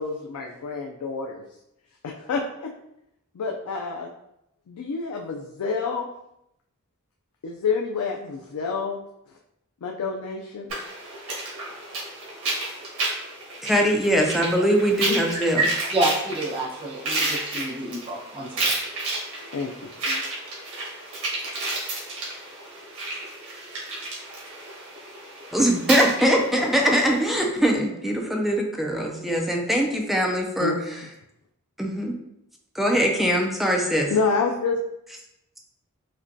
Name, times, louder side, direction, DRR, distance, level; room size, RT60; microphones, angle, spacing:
voice 1, 0.0-1.4 2.0-2.7 3.3-4.1 4.7-6.1 7.4-9.0 9.8-10.7 19.1-19.2 19.5-20.2 30.6-30.8 34.1-34.8, left 4 dB, 85° left, 1 dB, 0.4 m, -28 dB
sound 1, 10.7-27.4, right 2 dB, 75° right, 1.3 m, -32 dB
voice 2, 13.6-15.6 25.5-31.0 31.8-32.2 32.7-34.1, equal, ahead, 1 dB, 0.3 m, -22 dB
voice 3, 15.3-18.7, right 2 dB, 25° right, -8 dB, 0.9 m, -28 dB
5.0 x 2.2 x 2.7 m, 0.82 s
head